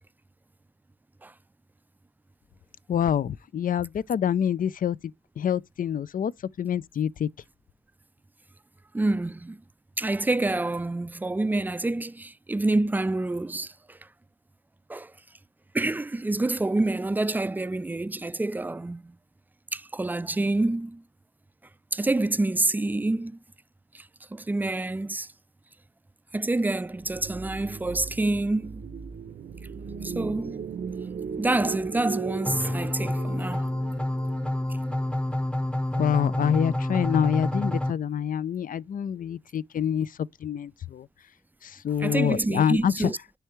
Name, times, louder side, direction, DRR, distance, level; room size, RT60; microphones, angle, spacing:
voice 1, 2.9-5.0 5.4-6.3 6.6-7.3 36.0-40.1 40.4-41.1 41.8-43.1, left 8 dB, 65° left, 0.4 m, -26 dB
voice 2, 8.9-9.6 10.0-14.0 14.9-15.1 15.7-19.1 19.7-21.0 21.9-23.4 23.9-24.1 24.3-25.3 26.3-28.8 30.0-30.6 31.4-33.7 42.0-43.2, right 2 dB, 10° right, 0.3 m, -27 dB
sound 1, 27.0-35.3, right 5 dB, 65° right, 0.6 m, -37 dB
sound 2, 32.5-37.9, left 1 dB, 5° left, 0.7 m, -28 dB
9.8 x 3.4 x 3.1 m
cardioid pair, 55°, 16 cm